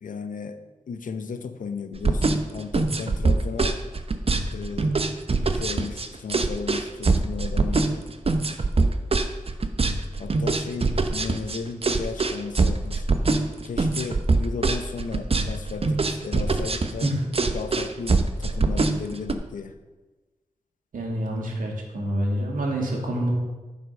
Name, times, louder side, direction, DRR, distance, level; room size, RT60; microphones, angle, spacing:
voice 1, 0.0-0.6 0.9-3.8 4.5-5.0 5.5-8.0 10.2-13.3 13.6-17.1 17.5-19.7, left 5 dB, 75° left, 9 dB, 0.8 m, -35 dB
sound 1, 1.9-19.3, right 3 dB, 45° right, 0.9 m, -23 dB
voice 2, 20.9-23.3, right 1 dB, 75° right, 0 dB, 2.2 m, -27 dB
9.5 x 5.3 x 6.5 m, 1.2 s
cardioid pair, 40°, 14 cm